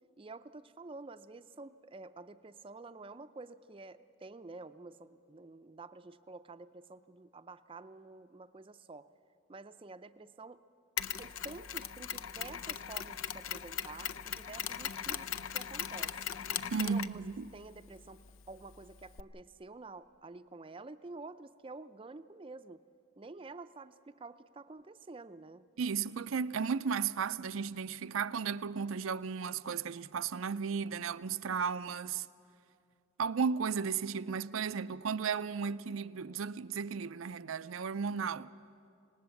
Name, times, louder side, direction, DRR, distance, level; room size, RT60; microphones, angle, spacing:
voice 1, 0.2-9.1 9.5-10.6 11.2-16.2 16.8-17.2 17.5-18.2 18.5-22.8 23.2-25.6, right 3 dB, 25° right, 0.5 m, -49 dB
Mechanisms, 11.0-19.2, left 9 dB, 85° left, 0.6 m, -40 dB
voice 2, 16.7-17.5 25.8-32.3 33.2-38.5, right 6 dB, 90° right, 0.5 m, -34 dB
26.0 x 19.0 x 7.1 m
head